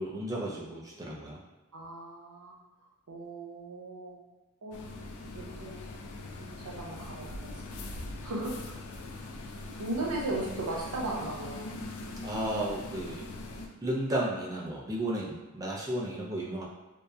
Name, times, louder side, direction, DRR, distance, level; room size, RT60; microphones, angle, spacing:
voice 1, 0.0-1.4 12.2-13.2 13.8-16.6, right 1 dB, 15° right, -4 dB, 0.4 m, -33 dB
voice 2, 1.7-2.6 3.1-4.2 4.6-4.8 5.3-5.8 6.2-7.3 8.2-8.6 9.8-11.7, right 2 dB, 85° right, -2 dB, 0.6 m, -36 dB
sound 1, 4.7-13.7, left 2 dB, 85° left, 0.3 m, -42 dB
2.7 x 2.0 x 2.3 m, 1.1 s
head